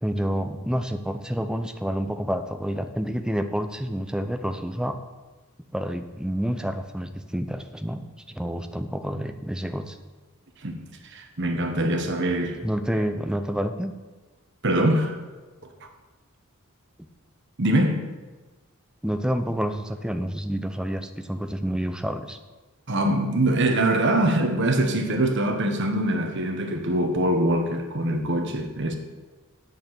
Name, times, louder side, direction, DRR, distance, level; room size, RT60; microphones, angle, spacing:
voice 1, 0.0-5.0 5.7-10.0 12.6-13.9 19.0-22.4, equal, 5° right, 8 dB, 0.5 m, -28 dB
voice 2, 10.6-12.6 14.6-15.2 17.6-18.1 22.9-29.0, right 1 dB, 50° right, 5 dB, 1.2 m, -23 dB
8.3 x 6.8 x 7.8 m, 1.3 s
head